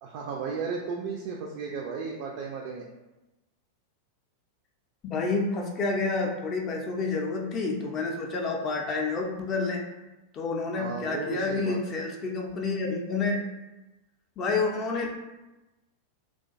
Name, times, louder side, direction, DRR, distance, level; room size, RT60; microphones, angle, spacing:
voice 1, 0.0-2.9 10.8-11.8, right 5 dB, 45° right, -1 dB, 0.3 m, -34 dB
voice 2, 5.0-9.9 10.3-13.4 14.4-15.3, left 3 dB, 30° left, 0 dB, 0.4 m, -29 dB
2.4 x 2.2 x 2.5 m, 1.0 s
figure-of-eight pair, 90°, 0 cm